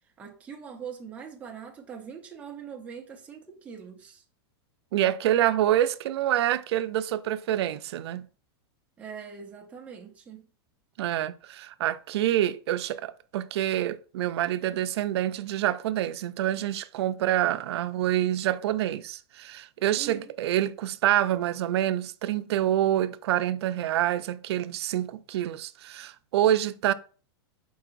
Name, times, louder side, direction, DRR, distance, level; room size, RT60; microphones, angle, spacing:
voice 1, 0.2-4.2 9.0-10.5 20.0-20.3, right 7 dB, 10° right, 0.5 m, -42 dB
voice 2, 4.9-8.3 11.0-26.9, right 12 dB, 75° right, 0.4 m, -27 dB
4.7 x 3.8 x 2.4 m
supercardioid pair, 165°, 14 cm